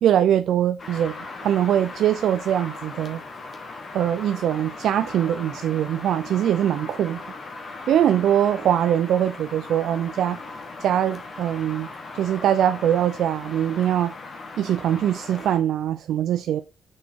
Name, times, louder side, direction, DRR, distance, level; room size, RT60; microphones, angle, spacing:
voice 1, 0.0-1.1 1.4-3.2 3.9-7.2 7.9-10.4 10.8-11.9 12.1-14.1 14.6-16.6, right 10 dB, 70° right, 0.4 m, -22 dB
sound 1, 0.8-15.6, left 3 dB, 35° left, 1.2 m, -38 dB
6.3 x 4.6 x 3.6 m
cardioid pair, 125°, 0 cm